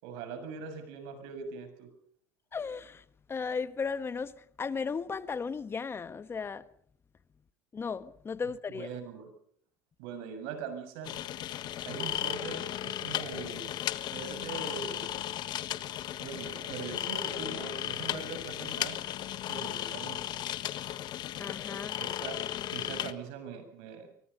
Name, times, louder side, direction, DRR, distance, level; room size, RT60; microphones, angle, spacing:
voice 1, 0.0-1.9 8.7-9.3 10.0-11.1 11.9-13.8 14.1-15.1 16.2-19.0 19.5-20.2 22.0-22.4 22.7-24.1, right 6 dB, 75° right, 7.2 m, -41 dB
voice 2, 2.5-3.0 3.3-6.6 7.7-8.9 21.4-22.0, left 5 dB, 25° left, 1.3 m, -35 dB
sound 1, 11.0-23.1, left 12 dB, 55° left, 1.5 m, -35 dB
24.5 x 24.0 x 5.5 m
supercardioid pair, 95°, 9 cm